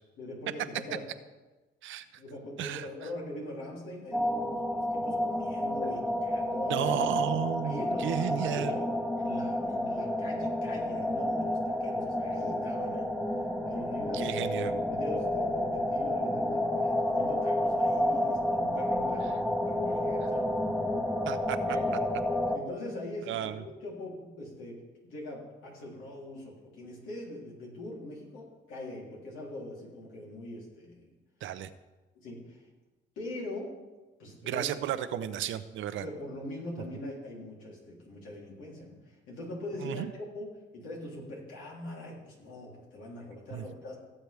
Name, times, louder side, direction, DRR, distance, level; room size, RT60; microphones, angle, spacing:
voice 1, 0.2-1.0 2.2-6.9 7.6-8.9 9.2-13.1 13.6-14.4 14.7-20.4 21.7-21.9 22.5-23.4 23.8-24.8 25.0-31.1 32.1-32.7 33.1-33.7 34.2-34.7 36.0-40.5 40.7-44.0, left 1 dB, 90° left, -3 dB, 3.3 m, -42 dB
sound 1, 4.1-22.6, left 1 dB, 5° left, 1.1 m, -30 dB
voice 2, 6.7-8.8 14.1-14.8 21.2-21.6 23.3-23.6 31.4-31.7 34.4-36.1 39.8-40.1 43.5-43.6, right 11 dB, 80° right, 12 dB, 0.7 m, -33 dB
17.5 x 7.6 x 3.5 m, 1.2 s
cardioid pair, 90°, 20 cm